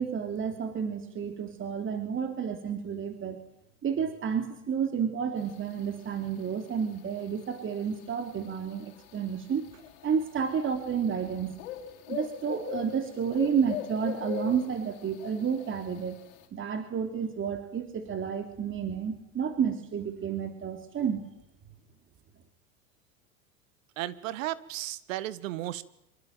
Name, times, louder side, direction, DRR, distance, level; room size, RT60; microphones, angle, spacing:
voice 1, 0.0-3.4 3.8-9.6 10.0-11.5 12.1-16.2 16.5-21.2, right 7 dB, 25° right, 7 dB, 3.3 m, -31 dB
sound 1, 5.4-16.5, left 10 dB, 60° left, 4.7 m, -42 dB
voice 2, 24.0-25.8, right 15 dB, 60° right, 17 dB, 1.7 m, -34 dB
25.5 x 25.0 x 9.1 m, 0.77 s
hypercardioid pair, 95°, 43 cm